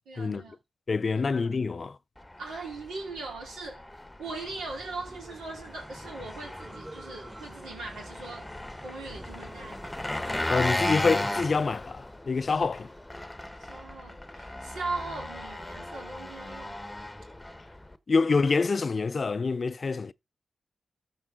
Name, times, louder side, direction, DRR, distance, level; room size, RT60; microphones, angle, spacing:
voice 1, 0.1-0.6 1.1-1.3 2.4-3.9 4.2-8.5 8.8-10.0 13.6-16.8, right 3 dB, 85° right, 3.4 m, -39 dB
voice 2, 0.9-2.0 10.5-12.9 18.1-20.1, left 4 dB, 50° left, 0.4 m, -26 dB
Engine, 2.2-18.0, left 1 dB, 15° left, 1.0 m, -36 dB
sound 1, 4.2-11.0, right 1 dB, 15° right, 2.9 m, -48 dB
13.5 x 4.6 x 3.6 m
supercardioid pair, 45°, 0 cm